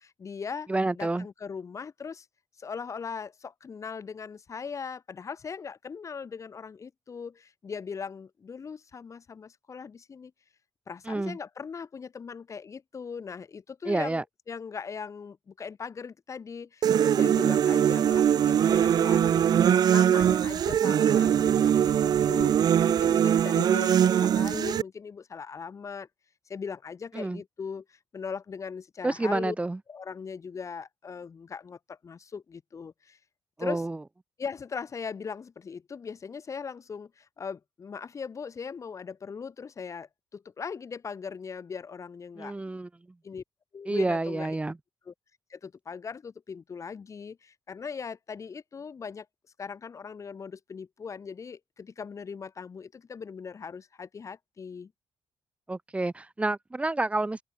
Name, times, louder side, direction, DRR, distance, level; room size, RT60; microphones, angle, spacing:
voice 1, 0.0-2.3 2.6-10.3 10.9-26.1 26.5-29.6 29.9-33.2 33.6-33.9 34.4-42.5 43.2-43.4 43.7-44.6 45.0-45.1 45.5-49.3 49.6-54.9, left 6 dB, 40° left, 4.6 m, -39 dB
voice 2, 0.7-1.2 11.1-11.4 13.8-14.2 27.1-27.4 29.0-29.8 33.6-34.0 42.4-42.9 43.9-44.8 55.7-57.4, right 2 dB, 15° right, 5.1 m, -29 dB
sound 1, 16.8-24.8, right 9 dB, 55° right, 0.5 m, -22 dB
cardioid pair, 125°, 8 cm